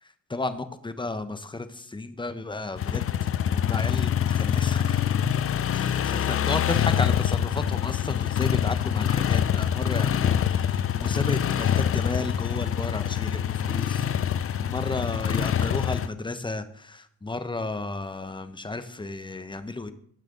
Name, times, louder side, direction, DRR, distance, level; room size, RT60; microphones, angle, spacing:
voice 1, 0.0-3.0 3.5-5.1 5.7-14.3 14.6-19.9, left 3 dB, 15° left, 11 dB, 1.0 m, -33 dB
sound 1, 2.8-16.1, left 9 dB, 45° left, 0.6 m, -25 dB
17.0 x 6.1 x 4.0 m, 0.62 s
cardioid pair, 80°, 30 cm